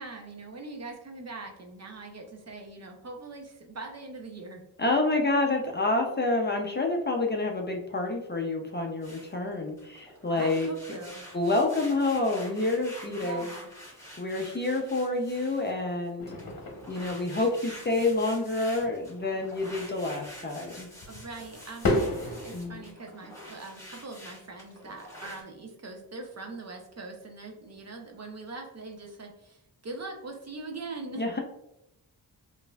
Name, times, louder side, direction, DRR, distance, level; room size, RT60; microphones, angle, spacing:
voice 1, 0.0-4.6 10.3-11.2 13.0-13.7 21.1-31.3, right 3 dB, 40° right, 2 dB, 0.6 m, -42 dB
voice 2, 4.8-10.7 11.3-13.5 14.2-16.3 16.9-20.9 22.5-22.8 31.2-31.4, left 2 dB, 25° left, 1 dB, 0.5 m, -28 dB
sound 1, 9.0-9.3 9.7-15.8 16.3-25.4, left 1 dB, 5° left, 1.3 m, -47 dB
sound 2, 16.2-22.9, left 1 dB, 55° left, 0.9 m, -35 dB
5.1 x 2.6 x 2.3 m, 0.84 s
wide cardioid pair, 110°, 41 cm